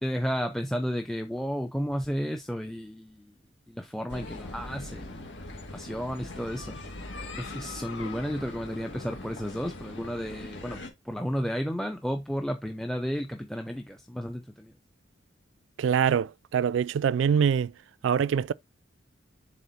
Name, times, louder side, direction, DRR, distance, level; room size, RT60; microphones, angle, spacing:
voice 1, 0.0-3.3 3.7-6.8 7.2-14.7, equal, ahead, 0.5 m, -33 dB
sound 1, 4.1-10.9, left 2 dB, 70° left, 1.9 m, -41 dB
voice 2, 15.8-17.7 18.0-18.5, right 7 dB, 75° right, 0.3 m, -24 dB
7.0 x 3.9 x 4.2 m
head